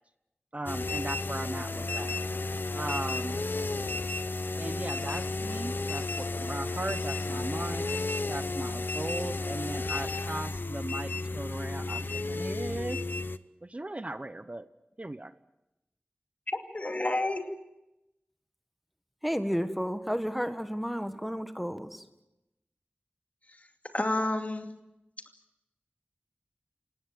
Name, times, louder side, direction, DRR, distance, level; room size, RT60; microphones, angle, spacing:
voice 1, 0.5-2.2 2.7-3.4 4.6-7.9 8.3-12.0 12.3-13.0 13.6-14.7 15.0-15.3, right 1 dB, 35° right, 12 dB, 0.9 m, -37 dB
sound 1, 0.7-13.4, left 3 dB, 65° left, 0.8 m, -33 dB
voice 2, 16.5-17.5 23.9-24.7, left 2 dB, 40° left, 5 dB, 2.6 m, -30 dB
voice 3, 19.2-22.0, equal, ahead, 9 dB, 1.6 m, -32 dB
28.0 x 17.5 x 7.7 m, 0.92 s
wide cardioid pair, 60°, 4 cm